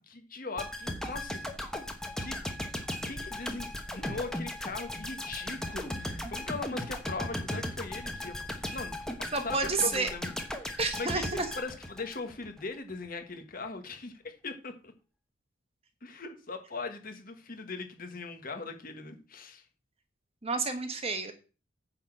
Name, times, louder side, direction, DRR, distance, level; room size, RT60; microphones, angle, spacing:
voice 1, 0.1-1.4 2.2-2.5 3.0-10.3 10.6-14.9 16.0-19.6, left 3 dB, 45° left, 6 dB, 1.5 m, -40 dB
sound 1, 0.6-12.6 12.9-13.1, left 1 dB, 5° left, 1.1 m, -37 dB
voice 2, 9.3-10.1 10.8-11.5 20.4-21.3, right 4 dB, 30° right, 8 dB, 1.2 m, -30 dB
9.7 x 4.0 x 7.5 m, 0.34 s
head